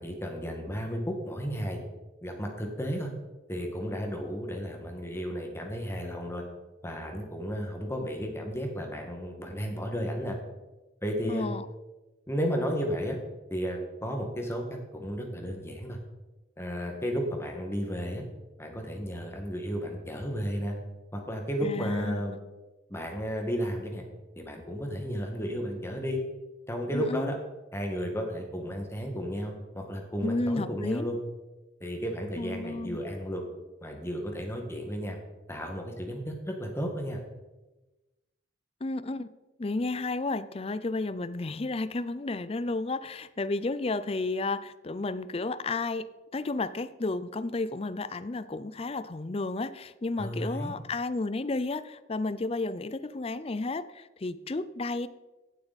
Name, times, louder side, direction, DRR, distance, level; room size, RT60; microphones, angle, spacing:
voice 1, 0.0-1.8 2.2-3.1 3.5-6.4 6.8-10.4 11.0-11.5 12.3-13.2 13.5-14.6 14.9-16.0 16.6-18.2 18.6-20.7 21.1-22.3 22.9-24.0 24.3-26.2 26.7-27.4 27.7-31.2 31.8-33.4 33.8-35.2 35.5-37.2 50.2-50.7, equal, 15° left, 2 dB, 1.7 m, -33 dB
voice 2, 11.3-11.6 21.6-22.4 26.9-27.3 30.2-31.1 32.4-33.0 38.8-39.3 39.6-55.1, left 3 dB, 35° left, 15 dB, 0.5 m, -32 dB
16.0 x 7.9 x 4.1 m, 1.1 s
head